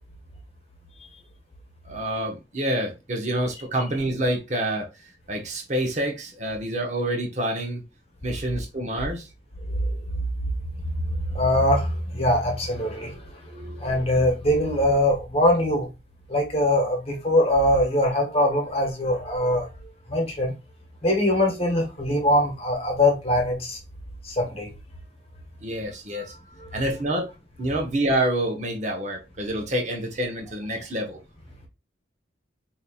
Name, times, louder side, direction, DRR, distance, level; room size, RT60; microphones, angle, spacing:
voice 1, 1.9-4.9 5.3-7.8 8.2-9.2 25.6-26.3 26.7-27.3 27.6-31.2, right 1 dB, 40° right, 1.0 m, -27 dB
voice 2, 11.3-13.2 13.5-15.9 16.3-19.7 20.1-20.5 21.0-23.8 24.2-24.7 26.1-26.3 26.6-26.8, left 1 dB, 35° left, 1.2 m, -22 dB
5.2 x 2.8 x 2.5 m
head